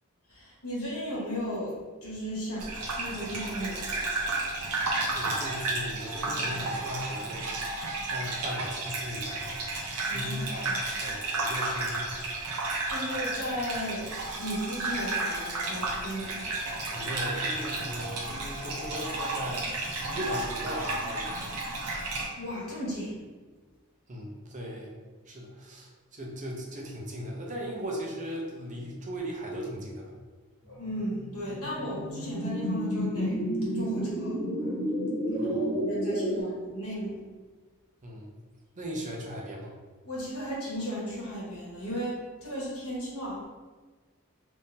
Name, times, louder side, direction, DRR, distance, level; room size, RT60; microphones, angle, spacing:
voice 1, 0.3-4.1 10.1-10.8 12.9-16.5 22.4-23.2 30.6-33.4 33.7-34.8 35.3-35.5 35.9-37.2 40.0-43.4, equal, 75° left, -6 dB, 1.3 m, -36 dB
Gurgling / Bathtub (filling or washing), 2.6-22.3, right 2 dB, 90° right, 0.6 m, -32 dB
voice 2, 5.1-7.5 8.1-9.4 10.1-12.1 16.9-21.5 24.1-24.9 25.3-30.1 35.3-35.8 38.0-38.3 38.8-39.7, equal, 35° right, -1 dB, 0.6 m, -38 dB
sound 1, 30.9-36.4, equal, 40° left, 0.7 m, -31 dB
3.6 x 2.6 x 2.7 m, 1.3 s
head